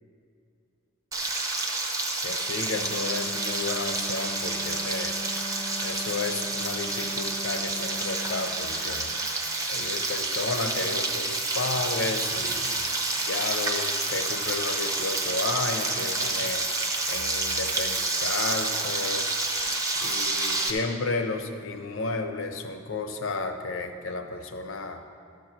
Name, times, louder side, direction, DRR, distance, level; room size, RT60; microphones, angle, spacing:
Frying (food), 1.1-20.7, right 2 dB, 15° right, 0.8 m, -29 dB
voice 1, 2.2-5.2 5.8-9.1 9.7-12.9 13.3-16.6 17.1-19.3 20.0-25.0, left 3 dB, 70° left, 6 dB, 0.8 m, -32 dB
sound 1, 2.7-8.6, equal, 20° left, 0.6 m, -39 dB
12.5 x 4.7 x 7.4 m, 2.5 s
head